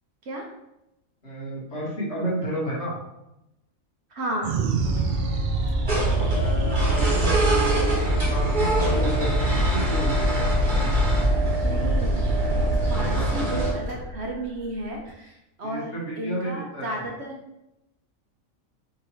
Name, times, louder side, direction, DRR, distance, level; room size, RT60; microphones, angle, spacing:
voice 1, 1.2-3.0 6.3-10.5 13.0-13.6 15.6-17.0, right 1 dB, 55° left, -6 dB, 1.7 m, -32 dB
voice 2, 4.1-4.6 11.6-12.2 12.9-17.4, right 1 dB, 60° right, 0 dB, 1.0 m, -33 dB
sound 1, 4.4-15.1, right 3 dB, 85° right, 0.4 m, -26 dB
sound 2, 4.8-14.0, left 1 dB, 75° left, 1.3 m, -32 dB
sound 3, 5.9-13.7, right 1 dB, 35° right, 1.2 m, -25 dB
5.5 x 2.9 x 3.0 m, 0.90 s
omnidirectional pair, 1.4 m